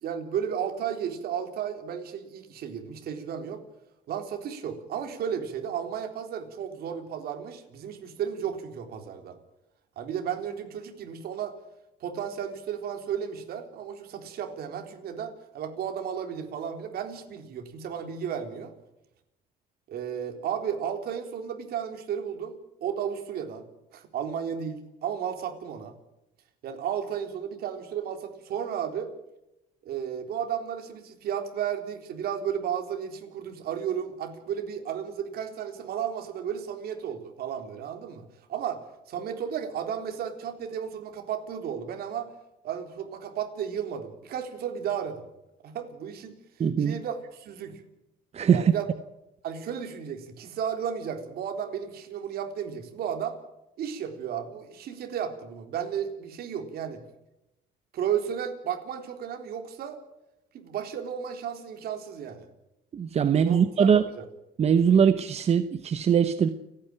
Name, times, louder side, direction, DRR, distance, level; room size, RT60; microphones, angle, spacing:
voice 1, 0.0-3.6 4.1-9.4 10.0-11.6 12.0-18.7 19.9-23.6 23.9-25.9 26.6-29.1 29.8-38.8 39.1-42.3 42.6-45.2 45.6-46.3 46.8-47.8 48.5-48.9 49.4-53.4 53.8-57.0 57.9-60.0 60.5-62.5 63.3-64.2, right 8 dB, 65° right, 5 dB, 3.8 m, -33 dB
voice 2, 46.6-47.0 48.3-48.7 62.9-64.0 64.6-66.5, right 7 dB, 40° right, 11 dB, 1.0 m, -21 dB
30.0 x 10.0 x 9.0 m, 0.89 s
cardioid pair, 110°, 17 cm